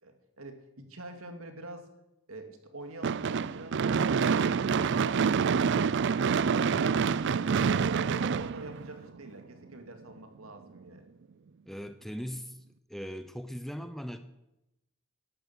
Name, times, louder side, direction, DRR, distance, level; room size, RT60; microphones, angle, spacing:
voice 1, 0.0-1.9 2.3-6.2 7.4-11.0, right 2 dB, 75° right, 6 dB, 2.4 m, -46 dB
Gunshot gunfire / Fireworks, 3.0-9.3, right 6 dB, 55° right, 0.4 m, -27 dB
voice 2, 11.7-14.2, equal, ahead, 10 dB, 0.7 m, -39 dB
11.5 x 11.5 x 8.0 m, 0.91 s
head